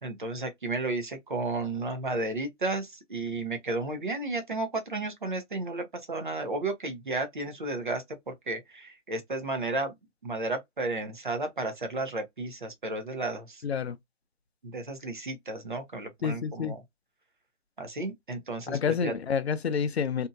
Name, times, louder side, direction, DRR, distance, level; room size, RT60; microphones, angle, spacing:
voice 1, 0.0-9.9 10.2-13.5 14.6-16.8 17.8-19.1, right 2 dB, 40° right, 0.7 m, -33 dB
voice 2, 13.6-14.0 16.2-16.8 18.7-20.3, left 6 dB, 60° left, 0.5 m, -28 dB
2.7 x 2.6 x 2.2 m
hypercardioid pair, 175°, 37 cm